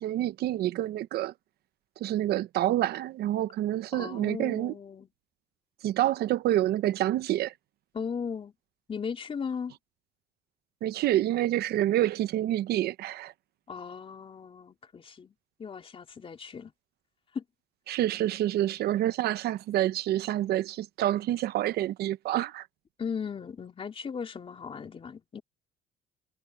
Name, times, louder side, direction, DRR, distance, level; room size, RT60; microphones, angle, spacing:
voice 1, 0.0-1.3 2.0-4.7 5.8-7.5 10.8-13.3 17.9-22.7, right 13 dB, 70° right, 0.8 m, -27 dB
voice 2, 3.9-5.1 7.9-8.5 8.9-9.8 13.7-15.3 15.6-16.7 17.3-17.4 23.0-25.4, left 6 dB, 35° left, 3.5 m, -37 dB
cardioid pair, 110°, 17 cm